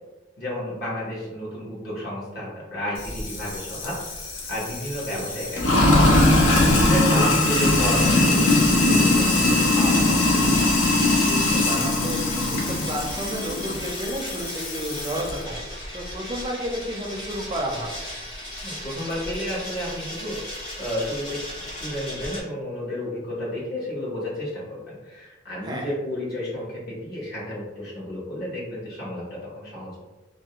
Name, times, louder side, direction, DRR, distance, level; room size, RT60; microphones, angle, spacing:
voice 1, 0.4-4.0 4.5-6.1 6.7-10.2 18.6-30.0, equal, 55° left, -7 dB, 0.9 m, -32 dB
Sink (filling or washing), 3.0-15.3, left 2 dB, 80° left, 0.5 m, -21 dB
sound 1, 7.4-22.4, left 1 dB, 25° left, 0.8 m, -37 dB
voice 2, 11.2-12.2 12.5-18.0 25.6-25.9, right 1 dB, 20° right, -1 dB, 0.4 m, -31 dB
2.4 x 2.0 x 2.8 m, 1.2 s
head